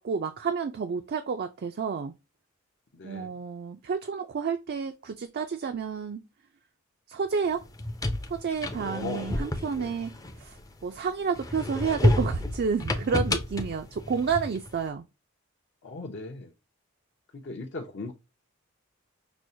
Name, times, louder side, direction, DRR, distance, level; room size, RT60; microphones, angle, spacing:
voice 1, 0.0-2.1 3.0-6.2 7.1-7.6 8.3-15.0, right 5 dB, 50° right, 0.4 m, -30 dB
voice 2, 2.9-3.3 8.9-9.4 9.6-9.9 15.8-16.5 17.3-18.1, left 3 dB, 55° left, 0.7 m, -38 dB
sound 1, 7.6-10.9 11.4-14.7, left 1 dB, 15° left, 0.5 m, -29 dB
6.0 x 2.1 x 2.7 m
head